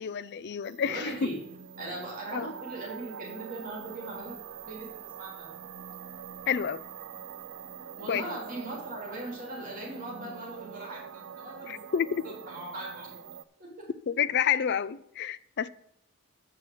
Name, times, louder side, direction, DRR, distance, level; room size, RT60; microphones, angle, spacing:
voice 1, 0.0-1.3 2.3-2.5 6.5-6.8 8.1-8.2 11.7-12.2 14.1-15.7, left 7 dB, 50° left, 0.4 m, -29 dB
sound 1, 0.6-13.4, right 7 dB, 60° right, 0.5 m, -45 dB
voice 2, 0.8-1.4 1.8-5.6 8.0-11.8 12.2-13.2 13.6-13.9, right 2 dB, 40° right, 3.4 m, -39 dB
7.5 x 6.3 x 7.4 m
head